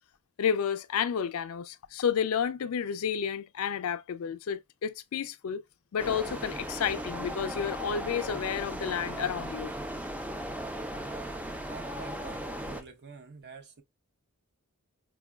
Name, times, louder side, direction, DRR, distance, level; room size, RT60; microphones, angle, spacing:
voice 1, 0.4-5.6 5.9-9.7, left 7 dB, 70° left, 0.4 m, -31 dB
sound 1, 6.0-12.8, right 1 dB, 5° right, 0.4 m, -37 dB
voice 2, 11.0-11.4 11.7-13.8, right 5 dB, 50° right, 0.7 m, -48 dB
4.9 x 2.2 x 2.2 m
head